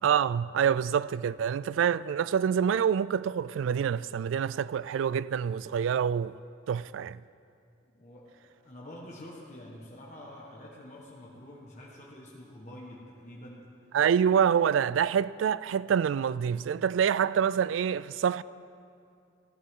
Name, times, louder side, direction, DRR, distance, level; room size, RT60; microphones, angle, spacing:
voice 1, 0.0-6.4 6.7-7.2 13.9-18.4, right 8 dB, 85° right, 0.3 m, -26 dB
voice 2, 7.8-13.6, left 1 dB, 40° left, 1.5 m, -47 dB
14.5 x 14.0 x 3.8 m
head